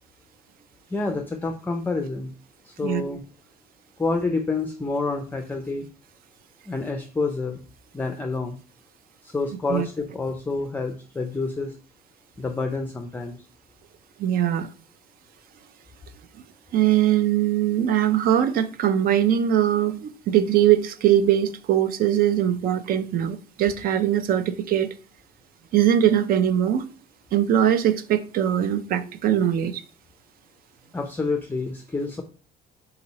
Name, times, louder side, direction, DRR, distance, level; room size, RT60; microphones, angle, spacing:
voice 1, 0.9-2.3 2.6-3.2 4.0-5.9 6.7-7.6 7.9-8.6 9.2-11.8 12.4-13.4 30.9-32.2, left 3 dB, 10° left, 0.4 m, -28 dB
voice 2, 14.2-14.7 16.7-24.9 25.7-26.9 27.3-29.8, right 10 dB, 60° right, 0.5 m, -21 dB
3.8 x 2.9 x 4.0 m
cardioid pair, 110°, 17 cm